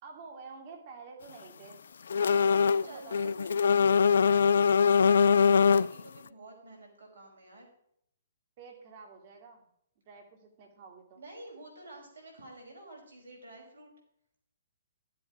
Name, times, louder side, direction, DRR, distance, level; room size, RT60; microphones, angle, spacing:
voice 1, 0.0-1.8 2.4-3.2 8.6-9.7 10.1-11.2, right 4 dB, 45° right, 3 dB, 2.5 m, -49 dB
sound 1, 2.1-2.8 3.1-6.0, left 6 dB, 70° left, 0.4 m, -22 dB
voice 2, 2.2-7.7 11.1-13.9, right 2 dB, 75° right, 1 dB, 5.1 m, -49 dB
12.5 x 7.8 x 5.0 m, 0.72 s
hypercardioid pair, 130°, 0 cm